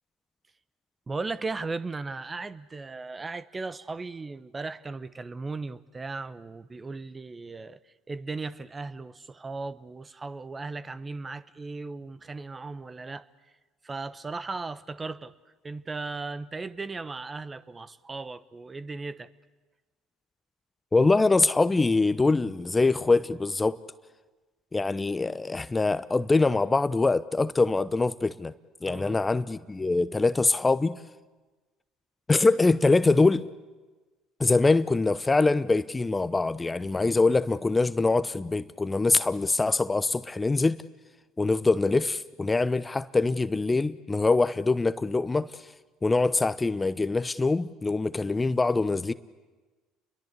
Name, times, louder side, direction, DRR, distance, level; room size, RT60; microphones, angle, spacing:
voice 1, 1.1-13.2 13.8-15.3 15.6-19.3 28.9-29.2, right 3 dB, 25° right, 1.1 m, -37 dB
voice 2, 20.9-23.8 24.7-28.5 28.8-31.0 32.3-33.4 34.4-40.8 41.4-45.6 46.0-49.1, left 3 dB, 20° left, 0.9 m, -24 dB
30.0 x 22.5 x 8.4 m
hypercardioid pair, 65°, 0 cm